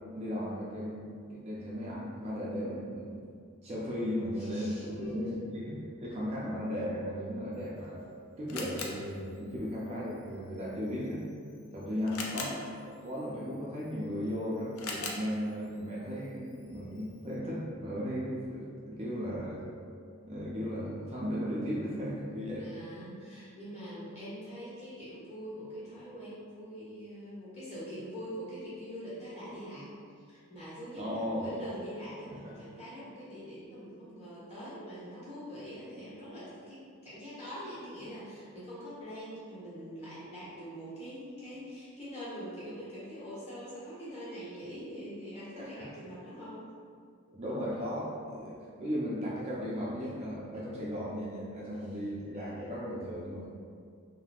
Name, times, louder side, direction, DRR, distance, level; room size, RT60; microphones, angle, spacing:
voice 1, 0.1-3.2 3.6-8.0 8.4-11.3 11.7-19.6 20.2-22.7 31.0-31.5 32.3-32.4 45.6-45.9 47.3-53.5, equal, 30° right, -6 dB, 0.4 m, -36 dB
voice 2, 4.4-5.3 22.5-29.9 30.2-46.6, equal, 30° left, -11 dB, 1.4 m, -44 dB
Camera, 7.5-17.4, left 3 dB, 80° left, 0.4 m, -45 dB
3.4 x 2.5 x 2.3 m, 2.2 s
head